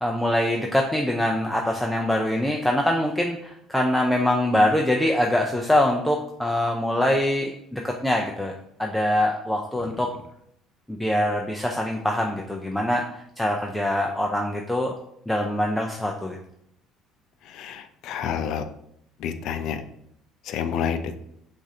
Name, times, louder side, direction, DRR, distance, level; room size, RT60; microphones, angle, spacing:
voice 1, 0.0-8.5 8.8-10.1 10.9-14.9 15.3-16.4, left 1 dB, 5° left, 1 dB, 0.4 m, -24 dB
voice 2, 17.5-18.6 19.2-19.8 20.5-21.2, left 8 dB, 65° left, 10 dB, 0.4 m, -29 dB
6.2 x 2.5 x 2.8 m, 0.73 s
cardioid pair, 115°, 0 cm